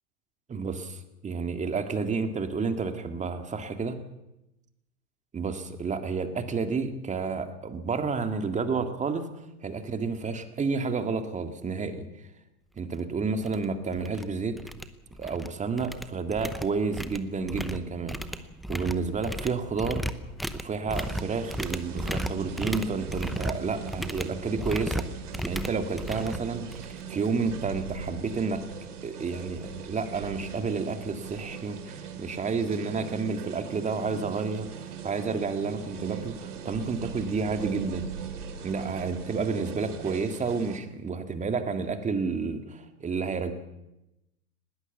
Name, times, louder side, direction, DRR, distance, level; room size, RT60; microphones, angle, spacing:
voice 1, 0.5-4.0 5.3-9.3 9.6-12.1 12.8-14.6 15.2-18.4 18.7-20.0 20.5-25.1 25.5-28.6 29.0-38.0 38.6-43.5, right 4 dB, 15° right, 8 dB, 2.0 m, -30 dB
scoop insides, 12.9-13.0 13.4-13.6 13.9-14.2 14.6-15.5 15.8-27.0, equal, ahead, 0.8 m, -35 dB
sound 1, 20.9-40.8, right 7 dB, 80° right, 3.2 m, -40 dB
20.0 x 18.0 x 7.2 m, 0.91 s
hypercardioid pair, 120°, 45 cm